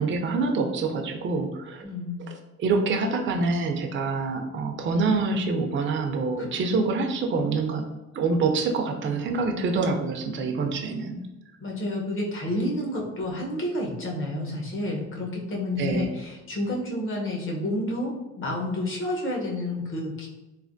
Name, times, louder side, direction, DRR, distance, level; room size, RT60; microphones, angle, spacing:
voice 1, 0.0-1.9 2.6-7.8 8.1-11.2 15.8-16.1, right 3 dB, 40° right, 3 dB, 0.4 m, -26 dB
voice 2, 1.8-2.2 6.4-6.5 11.6-20.3, left 1 dB, 45° left, -1 dB, 0.9 m, -30 dB
3.2 x 2.2 x 2.5 m, 1.0 s
cardioid pair, 90°, 30 cm